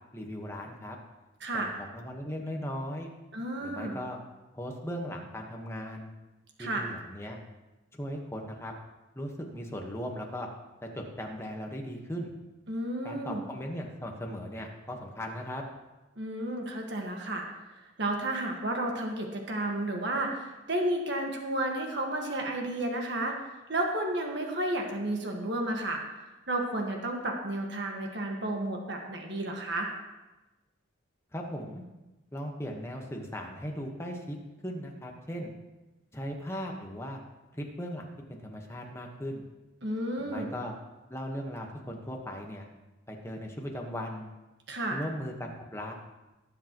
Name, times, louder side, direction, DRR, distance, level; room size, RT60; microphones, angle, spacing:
voice 1, 0.1-1.0 1.5-3.1 3.6-4.2 4.5-6.1 6.6-7.4 7.9-8.7 9.1-10.5 10.8-12.3 13.0-15.6 31.3-31.8 32.3-34.4 34.6-35.5 36.1-37.2 37.5-39.4 40.2-40.7 41.1-42.7 43.1-44.3 44.9-45.9, equal, 15° left, 1 dB, 1.3 m, -38 dB
voice 2, 1.4-1.7 3.3-4.0 6.6-6.8 12.7-13.4 16.2-17.4 18.0-23.3 23.7-26.0 26.5-29.9 39.8-40.5 44.7-45.0, right 1 dB, 60° right, 1 dB, 1.7 m, -32 dB
18.5 x 7.6 x 3.1 m, 1.1 s
head